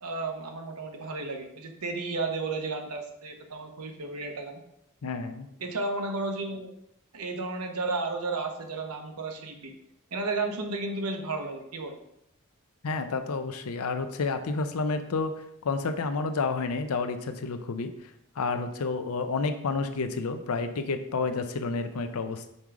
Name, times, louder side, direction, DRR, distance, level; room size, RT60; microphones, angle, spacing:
voice 1, 0.0-4.6 5.6-6.7 7.1-9.7 10.1-12.0, right 3 dB, 90° right, 4 dB, 0.9 m, -33 dB
voice 2, 5.0-5.5 12.8-15.3 15.6-18.1 18.4-22.5, left 4 dB, 75° left, 9 dB, 0.6 m, -30 dB
5.4 x 4.7 x 3.7 m, 0.78 s
head